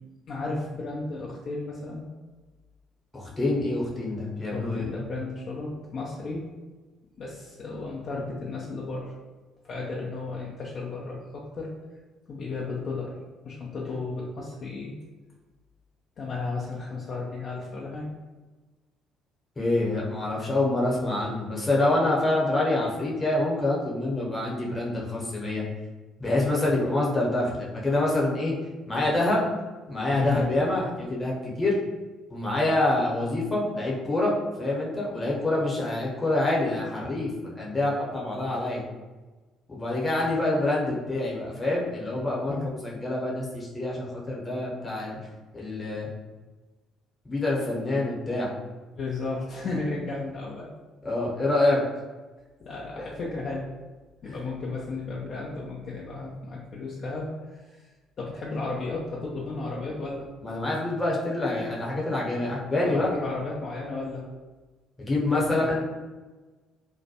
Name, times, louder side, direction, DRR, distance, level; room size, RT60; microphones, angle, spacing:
voice 1, 0.3-2.0 4.5-6.4 7.2-9.1 9.6-11.7 12.3-13.2 13.4-14.9 16.2-18.1 30.2-30.5 42.5-42.6 48.9-50.7 52.6-53.7 54.2-57.8 58.2-60.3 62.8-64.2 65.2-65.7, left 3 dB, 50° left, -4 dB, 0.4 m, -34 dB
voice 2, 3.1-4.9 19.6-25.6 26.2-28.5 28.9-29.5 29.9-31.8 32.3-38.8 39.7-42.6 42.8-45.2 45.5-46.1 47.2-48.5 51.0-51.8 53.0-53.1 60.4-63.1 65.0-65.8, left 2 dB, 25° left, -4 dB, 0.8 m, -26 dB
2.2 x 2.1 x 2.8 m, 1.2 s
figure-of-eight pair, 50°, 0 cm